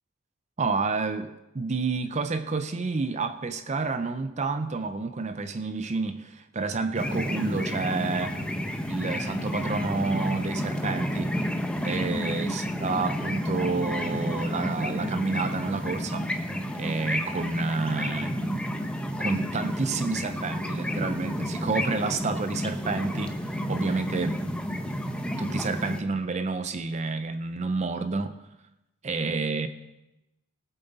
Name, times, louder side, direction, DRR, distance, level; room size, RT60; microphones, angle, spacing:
voice 1, 0.6-8.4 8.9-11.3 11.8-16.3 16.7-18.7 19.2-24.4 25.4-28.4 29.0-29.7, right 4 dB, 30° right, 10 dB, 0.5 m, -29 dB
sound 1, 7.0-26.0, equal, 5° left, 0.7 m, -31 dB
18.5 x 7.8 x 4.0 m, 0.93 s
head